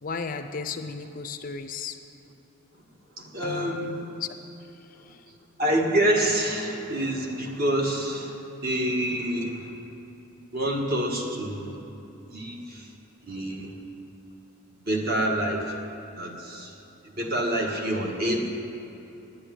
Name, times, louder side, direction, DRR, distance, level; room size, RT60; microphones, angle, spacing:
voice 1, 0.0-2.0 3.4-4.3 5.1-5.2, left 5 dB, 40° left, 8 dB, 0.5 m, -35 dB
voice 2, 3.2-4.2 5.6-8.3 8.6-9.7 10.5-11.7 12.3-12.9 13.2-13.7 14.9-15.7 16.2-16.8 17.2-18.5, right 1 dB, 45° right, 0 dB, 1.6 m, -27 dB
10.0 x 9.7 x 9.2 m, 3.0 s
head